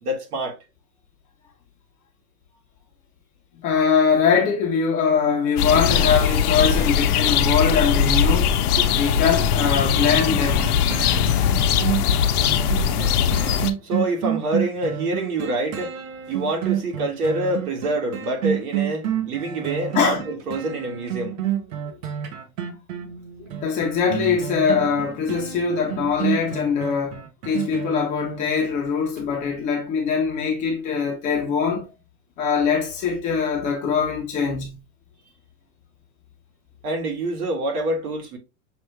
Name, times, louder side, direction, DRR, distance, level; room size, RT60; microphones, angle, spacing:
voice 1, 0.0-0.6 8.8-8.9 13.0-13.3 13.7-21.4 36.8-38.4, right 2 dB, 75° right, 1.9 m, -26 dB
voice 2, 3.6-8.6 8.9-10.8 19.9-20.2 21.9-22.0 23.6-31.9 32.4-34.8, left 6 dB, 15° left, 0.5 m, -22 dB
sound 1, 5.6-13.7, left 8 dB, 75° left, 0.7 m, -20 dB
sound 2, 10.0-28.7 29.2-29.3, right 11 dB, 60° right, 0.9 m, -29 dB
6.2 x 2.3 x 3.1 m
supercardioid pair, 160°, 45 cm